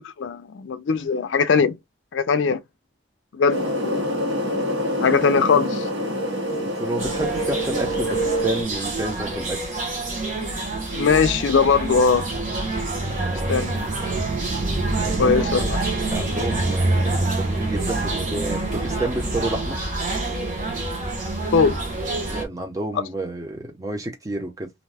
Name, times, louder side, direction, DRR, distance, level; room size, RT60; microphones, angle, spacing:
voice 1, 0.0-1.7 2.1-2.6 3.3-4.5 5.0-5.9 10.9-12.3 13.5-13.8 15.2-15.8 21.5-21.8 22.9-23.0, left 5 dB, 75° left, 0.4 m, -20 dB
sound 1, 3.5-8.6, equal, 85° right, 1.2 m, -26 dB
voice 2, 6.6-9.6 13.2-13.5 15.0-15.7 16.1-19.8 22.3-24.7, right 2 dB, 15° right, 0.7 m, -30 dB
sound 2, 7.0-22.4, right 2 dB, 40° right, 0.9 m, -26 dB
2.6 x 2.2 x 3.3 m
head